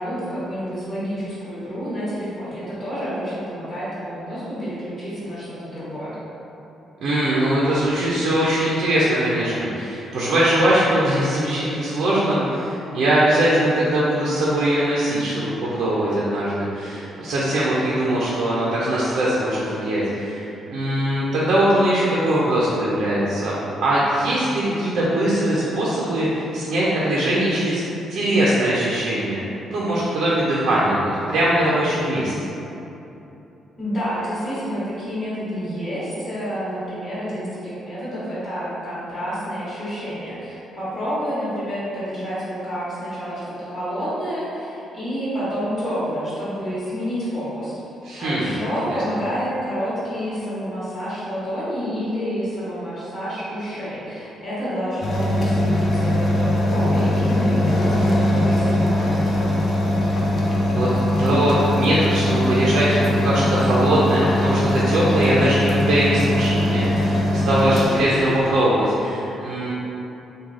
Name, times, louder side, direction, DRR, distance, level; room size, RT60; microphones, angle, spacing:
voice 1, 0.0-6.2 33.8-47.7 48.2-59.1, equal, 30° left, -14 dB, 1.3 m, -28 dB
voice 2, 7.0-23.6 23.8-27.8 28.1-29.4 29.7-32.3 48.0-48.5 48.9-49.0 60.7-60.9 61.2-69.7, right 1 dB, 70° right, -7 dB, 0.5 m, -21 dB
sound 1, 55.0-68.4, left 1 dB, 50° left, 0.5 m, -21 dB
3.1 x 2.3 x 3.6 m, 2.9 s
cardioid pair, 90°, 0 cm